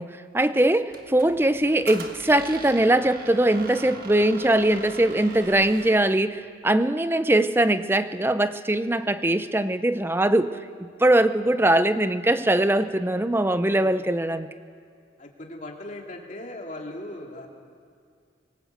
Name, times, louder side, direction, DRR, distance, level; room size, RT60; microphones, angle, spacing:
voice 1, 0.0-14.5, right 1 dB, 10° right, 12 dB, 0.6 m, -21 dB
Squeak, 0.9-6.2, right 3 dB, 50° right, 1.7 m, -41 dB
voice 2, 15.2-17.5, left 1 dB, 40° left, 1 dB, 2.7 m, -38 dB
24.5 x 19.0 x 8.0 m, 2.2 s
head